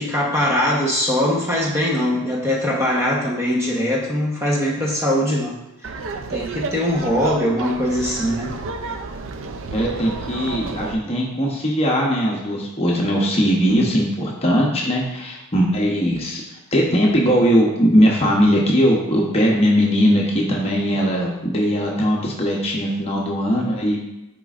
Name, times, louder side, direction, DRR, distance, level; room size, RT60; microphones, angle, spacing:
voice 1, 0.0-5.6 6.3-8.6, left 1 dB, 10° right, -3 dB, 1.0 m, -21 dB
Laughter, 5.8-10.9, right 4 dB, 60° right, 0.5 m, -31 dB
voice 2, 9.7-16.4 16.7-24.0, equal, 25° left, -2 dB, 0.9 m, -19 dB
7.6 x 5.1 x 2.5 m, 0.94 s
head